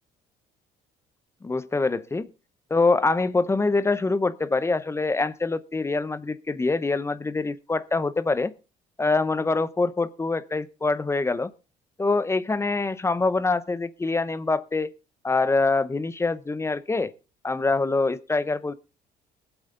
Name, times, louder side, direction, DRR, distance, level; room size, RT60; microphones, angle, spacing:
voice 1, 1.4-2.3 2.7-8.5 9.0-11.5 12.0-14.9 15.2-17.1 17.4-18.7, left 3 dB, 15° left, 0.8 m, -24 dB
20.5 x 8.1 x 3.8 m
cardioid pair, 110°, 17 cm